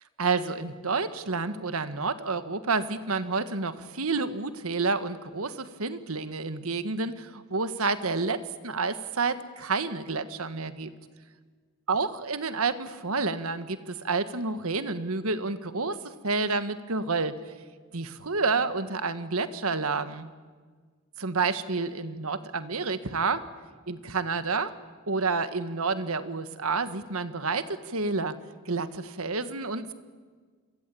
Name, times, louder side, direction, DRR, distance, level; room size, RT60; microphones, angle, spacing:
voice 1, 0.2-10.9 11.9-16.0 16.2-17.4 17.9-20.3 21.2-23.4 23.9-24.7 25.1-28.4 28.6-29.9, right 4 dB, 75° right, 11 dB, 1.5 m, -29 dB
28.5 x 23.0 x 8.6 m, 1.5 s
head